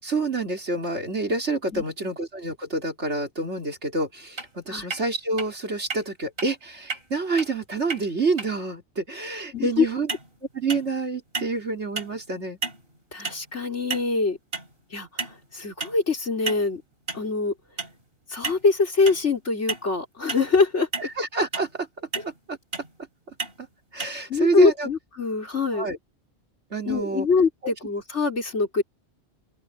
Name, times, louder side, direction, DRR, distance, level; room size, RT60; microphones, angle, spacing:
voice 1, 0.0-10.1 10.5-12.6 21.0-21.9 22.2-22.6 23.3-23.7 23.9-24.9 25.7-26.0 26.7-27.3, right 3 dB, 80° right, 4.1 m, -28 dB
sound 1, 4.4-4.5 4.9-5.0 5.4-5.5 5.9-6.0 6.4-6.5 6.9-7.0 7.4-7.5 7.9-8.0 8.4-8.5 10.1-10.3 10.7-11.0 11.3-11.6 12.0-12.2 12.6-12.8 13.2-13.4 13.9-14.2 14.5-14.7 15.2-15.4 15.8-16.0 16.5-16.7 17.1-17.3 17.8-18.0 18.4-18.6 19.1-19.3 19.7-19.9 20.3-20.5 20.9-21.1 21.5-21.7 22.1-22.3 22.7-22.9 23.4-23.6 24.0-24.1, right 4 dB, 55° right, 4.5 m, -32 dB
voice 2, 9.5-9.9 13.1-14.4 14.9-15.1 15.5-16.8 17.1-17.5 18.3-21.1 24.3-25.9 26.9-28.8, left 4 dB, 90° left, 4.2 m, -23 dB
open air
omnidirectional pair, 1.2 m